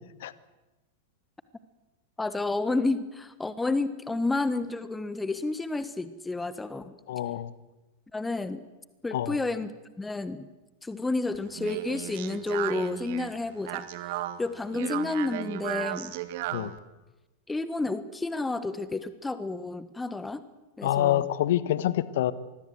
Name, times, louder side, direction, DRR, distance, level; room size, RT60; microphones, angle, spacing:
voice 1, 2.2-6.9 8.1-8.6 9.0-10.5 10.8-13.9 14.4-16.1 17.5-20.4 20.8-21.3, left 3 dB, 10° left, 14 dB, 1.3 m, -30 dB
voice 2, 7.1-7.5 9.1-9.4 16.5-16.7 20.8-22.3, left 13 dB, 55° left, 17 dB, 1.4 m, -26 dB
Speech, 11.3-16.8, right 14 dB, 50° right, 1.8 m, -35 dB
25.5 x 21.0 x 8.0 m, 1.1 s
figure-of-eight pair, 90°, 0 cm